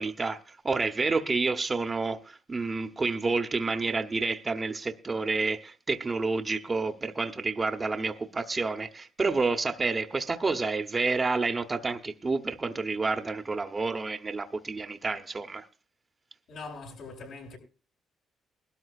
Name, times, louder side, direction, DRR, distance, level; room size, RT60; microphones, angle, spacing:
voice 1, 0.0-15.7, right 3 dB, 30° right, 1.1 m, -29 dB
voice 2, 16.5-17.6, left 3 dB, 75° left, 7.9 m, -42 dB
20.5 x 13.0 x 2.5 m
cardioid pair, 90°, 0 cm